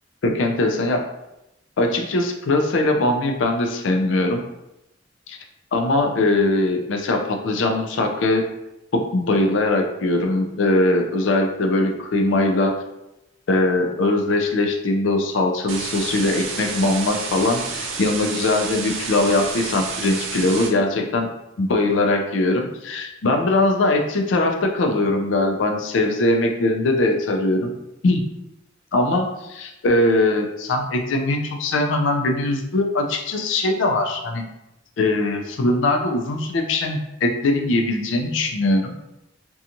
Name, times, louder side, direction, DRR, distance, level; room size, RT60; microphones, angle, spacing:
voice 1, 0.2-1.0 1.8-4.4 5.3-5.4 5.7-8.4 8.9-12.8 13.5-21.3 21.6-27.7 28.0-28.2 28.9-34.4 35.0-38.9, left 2 dB, 75° left, 3 dB, 0.4 m, -21 dB
sound 1, 15.7-20.7, right 4 dB, 85° right, 0.5 m, -30 dB
2.8 x 2.3 x 2.5 m, 0.89 s
head